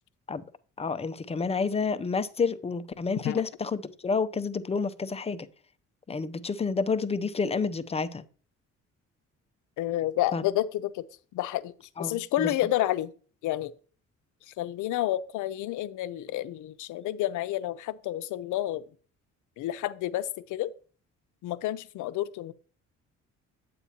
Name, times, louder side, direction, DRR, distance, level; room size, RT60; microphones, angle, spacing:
voice 1, 0.8-5.5 6.1-8.2 10.3-10.4 12.0-12.5, left 4 dB, 20° left, 0.5 m, -29 dB
voice 2, 9.8-11.0 11.3-11.7 12.0-13.1 13.4-13.7 14.5-18.8 19.6-20.7 21.4-22.5, left 14 dB, 85° left, 0.6 m, -30 dB
8.5 x 8.3 x 2.8 m
cardioid pair, 90°, 30 cm